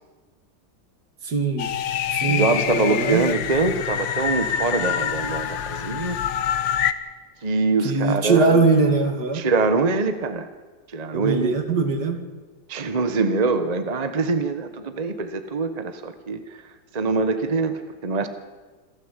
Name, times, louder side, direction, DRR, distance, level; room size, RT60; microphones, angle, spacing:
voice 1, 1.2-1.7 2.1-3.3 7.8-9.4 11.1-12.2, right 4 dB, 60° right, 7 dB, 2.5 m, -21 dB
sound 1, 1.6-6.9, left 9 dB, 80° left, 1.7 m, -25 dB
voice 2, 2.1-6.2 7.4-8.6 9.3-10.5 10.9-11.6 12.7-16.6 16.9-18.3, right 3 dB, 25° right, 9 dB, 1.2 m, -24 dB
27.0 x 13.5 x 8.2 m, 1.3 s
omnidirectional pair, 2.0 m